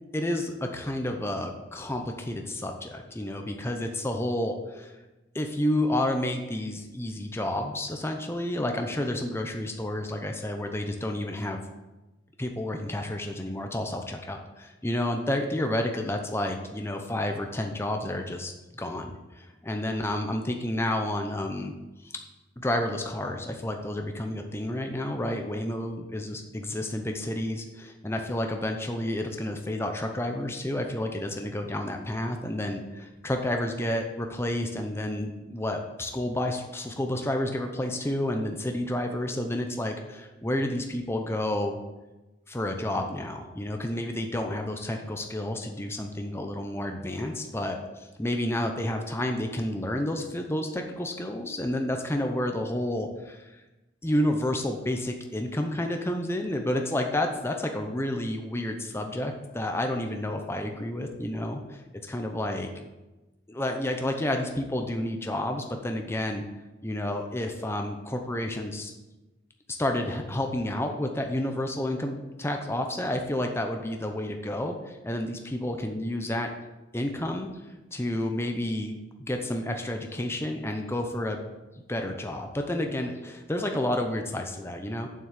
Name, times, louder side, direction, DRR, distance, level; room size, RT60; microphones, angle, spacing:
voice 1, 0.1-5.0 5.3-11.6 12.4-21.7 22.0-22.1 22.6-41.8 42.5-53.6 54.0-62.7 63.5-66.4 66.8-68.9 69.7-76.5 76.9-81.4 81.9-85.1, left 1 dB, 15° left, 4 dB, 0.7 m, -30 dB
7.5 x 6.0 x 7.4 m, 1.1 s
head